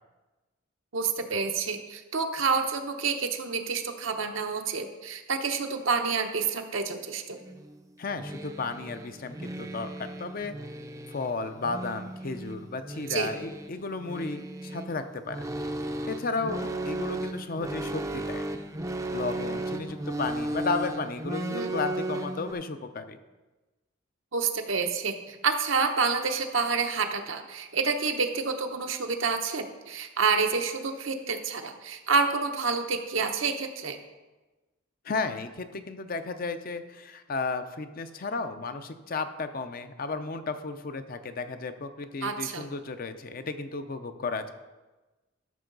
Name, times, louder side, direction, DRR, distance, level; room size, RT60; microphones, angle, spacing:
voice 1, 0.9-7.4 13.1-13.3 21.5-21.7 24.3-34.0 42.2-42.7, right 5 dB, 70° right, 5 dB, 0.9 m, -28 dB
sound 1, 7.4-22.5, right 1 dB, 15° right, 0.5 m, -35 dB
voice 2, 8.0-10.6 11.1-15.4 16.1-18.4 19.1-23.2 35.0-44.5, left 3 dB, 45° left, 9 dB, 0.6 m, -33 dB
12.5 x 6.3 x 3.9 m, 1.2 s
head